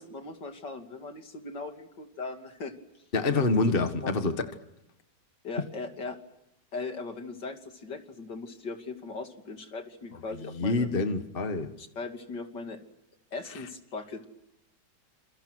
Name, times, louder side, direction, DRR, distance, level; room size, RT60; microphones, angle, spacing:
voice 1, 0.0-2.7 3.3-3.5 4.0-4.3 5.4-6.2 6.7-10.9 11.8-12.8 13.3-14.3, left 3 dB, 80° left, 3.4 m, -39 dB
voice 2, 3.1-4.5 10.5-11.7, left 3 dB, 35° left, 1.7 m, -26 dB
29.5 x 28.0 x 6.2 m
omnidirectional pair, 1.9 m